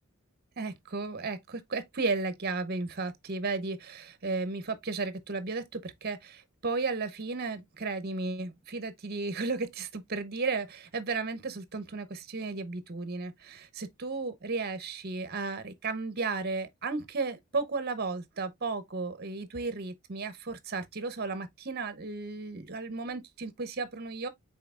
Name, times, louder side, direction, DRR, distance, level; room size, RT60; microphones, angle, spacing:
voice 1, 0.6-24.3, right 3 dB, 45° right, 0.8 m, -34 dB
5.7 x 4.0 x 2.3 m
head